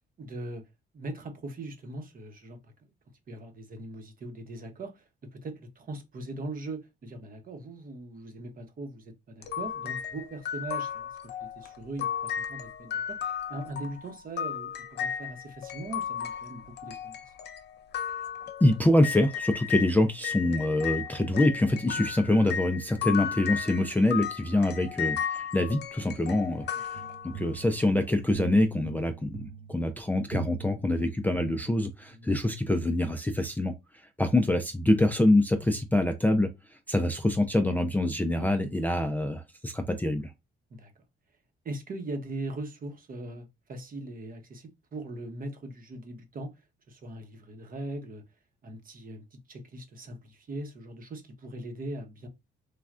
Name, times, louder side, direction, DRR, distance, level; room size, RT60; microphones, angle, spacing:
voice 1, 0.2-0.6 0.9-2.7 3.3-5.0 5.3-11.1 11.4-13.2 13.5-17.3 21.9-22.0 25.5-25.7 26.6-26.7 32.1-32.4 38.3-38.5 40.7-40.9 41.6-46.5 46.9-48.2 48.6-52.3, right 2 dB, 45° right, 0.9 m, -40 dB
sound 1, 9.4-19.9 20.2-27.6, left 8 dB, 60° left, 0.6 m, -35 dB
voice 2, 18.6-26.6 27.3-29.4 29.7-33.7 34.2-36.5 36.9-40.3, left 1 dB, 10° left, 0.4 m, -25 dB
sound 2, 26.9-32.2, right 7 dB, 75° right, 0.5 m, -43 dB
3.2 x 2.3 x 2.4 m
cardioid pair, 90°, 20 cm